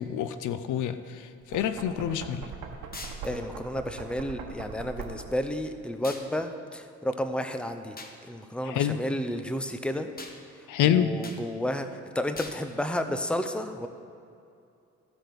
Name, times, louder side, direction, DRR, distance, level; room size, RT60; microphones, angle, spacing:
voice 1, 0.0-2.5 8.6-9.0 10.7-11.1, left 10 dB, 80° left, 11 dB, 0.6 m, -27 dB
Knock, 1.4-5.5, right 5 dB, 80° right, 1.1 m, -41 dB
sound 1, 2.9-3.2 6.0-6.3 8.0-8.2 10.2-10.4 11.2-11.4 12.3-12.6, left 3 dB, 30° left, 1.1 m, -41 dB
voice 2, 3.2-8.0 8.3-10.1 10.8-11.9 12.1-13.9, left 1 dB, 5° left, 8 dB, 0.6 m, -31 dB
14.5 x 5.2 x 5.9 m, 2.5 s
cardioid pair, 90°, 30 cm